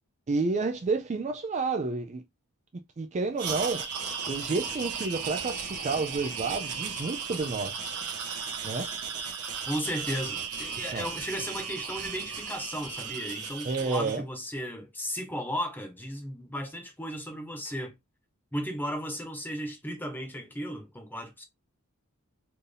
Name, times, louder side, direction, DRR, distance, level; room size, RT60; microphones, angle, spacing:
voice 1, 0.3-2.2 3.0-3.9 4.3-7.8 8.6-8.9 10.9-11.1 13.6-14.2, right 3 dB, 30° right, 0.4 m, -30 dB
sound 1, 3.4-14.2, right 6 dB, 90° right, 1.3 m, -35 dB
voice 2, 9.7-17.9 18.5-21.4, equal, 10° left, 1.1 m, -35 dB
4.3 x 2.6 x 3.4 m
head